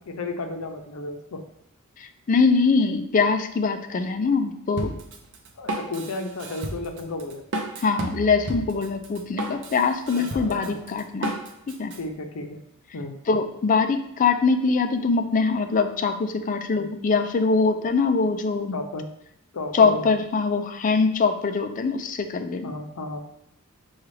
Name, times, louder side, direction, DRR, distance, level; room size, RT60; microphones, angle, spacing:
voice 1, 0.0-1.4 5.6-7.4 10.2-10.8 11.9-12.6 12.9-13.2 16.8-16.9 18.7-19.1 19.5-20.1 22.6-23.2, left 2 dB, 90° left, 5 dB, 0.6 m, -33 dB
voice 2, 2.0-5.0 7.8-11.4 11.7-11.9 13.3-18.7 19.7-22.7, left 4 dB, 40° left, 7 dB, 0.4 m, -23 dB
Drum kit, 4.8-12.0, right 1 dB, 60° right, 0.6 m, -33 dB
6.0 x 2.4 x 3.2 m, 0.74 s
head